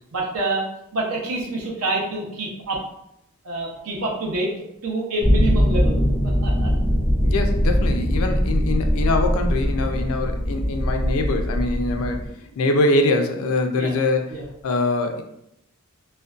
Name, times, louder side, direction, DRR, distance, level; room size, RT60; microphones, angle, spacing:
voice 1, 0.1-0.7 0.9-2.8 3.4-4.5 4.8-6.0 6.4-6.7 13.8-13.9 14.3-14.4, right 2 dB, 70° right, -2 dB, 0.6 m, -26 dB
sound 1, 5.2-12.3, equal, 5° right, 0.4 m, -21 dB
voice 2, 7.2-12.3 12.6-14.3 14.6-15.2, left 2 dB, 65° left, 5 dB, 0.3 m, -23 dB
2.4 x 2.1 x 2.3 m, 0.79 s
head